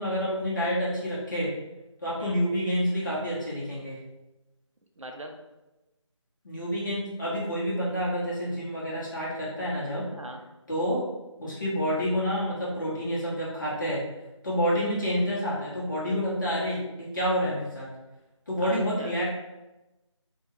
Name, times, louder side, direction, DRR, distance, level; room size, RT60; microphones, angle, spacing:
voice 1, 0.0-1.5 2.0-4.0 6.4-10.0 10.7-11.0 11.4-14.0 14.4-17.9 18.5-19.3, equal, 40° left, -7 dB, 1.1 m, -28 dB
voice 2, 5.0-5.3 10.1-10.4 18.6-19.2, right 1 dB, 75° right, 3 dB, 0.6 m, -40 dB
2.8 x 2.3 x 3.4 m, 1.0 s
figure-of-eight pair, 160°, 16 cm